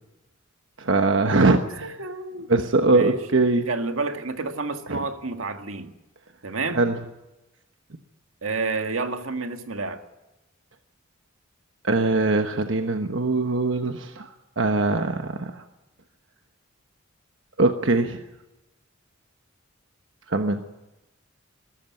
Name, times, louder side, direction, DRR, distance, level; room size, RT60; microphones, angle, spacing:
voice 1, 0.8-1.9 2.5-3.7 4.9-5.0 6.7-7.0 11.8-15.6 17.6-18.2 20.3-20.6, right 3 dB, 65° right, 6 dB, 1.2 m, -22 dB
voice 2, 2.0-2.5 2.8-3.2 3.7-5.9 6.4-6.8 8.4-10.0, right 3 dB, 90° right, 7 dB, 1.9 m, -29 dB
22.0 x 13.5 x 9.4 m, 1.0 s
head